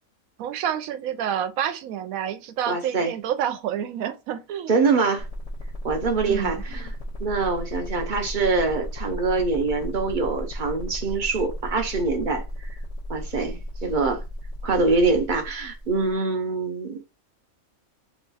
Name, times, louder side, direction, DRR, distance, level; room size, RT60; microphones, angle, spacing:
voice 1, 0.4-4.7 6.2-6.6, right 9 dB, 80° right, 1.0 m, -28 dB
voice 2, 2.7-3.1 4.7-5.3 5.8-6.9 7.2-12.7 13.1-14.2 14.6-17.0, right 3 dB, 50° right, 0.6 m, -24 dB
sound 1, 5.2-16.1, equal, 55° left, 0.4 m, -35 dB
3.0 x 2.3 x 3.9 m
omnidirectional pair, 1.4 m